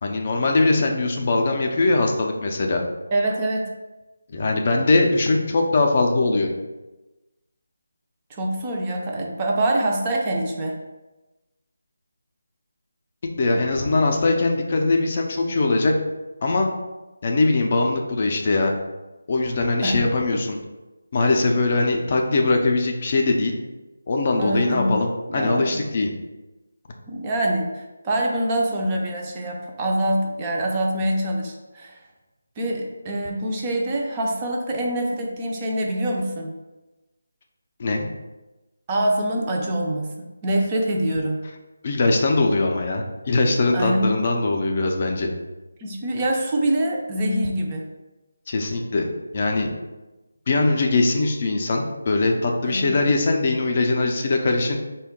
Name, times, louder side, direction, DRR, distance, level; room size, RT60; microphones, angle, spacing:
voice 1, 0.0-2.8 4.3-6.5 13.4-15.9 16.4-16.7 17.2-18.7 19.3-20.6 21.1-23.6 24.1-26.1 37.8-38.1 41.8-45.3 48.5-49.1 49.3-49.7 50.5-54.8, left 2 dB, 40° left, 2 dB, 0.4 m, -21 dB
voice 2, 3.1-3.7 8.3-10.8 19.8-20.0 24.4-25.0 25.3-25.7 27.1-32.0 32.6-36.5 38.9-41.4 43.7-44.2 45.8-47.8 52.7-53.0, right 1 dB, 20° right, 0 dB, 0.4 m, -25 dB
3.7 x 2.2 x 3.5 m, 1.1 s
figure-of-eight pair, 165°, 0 cm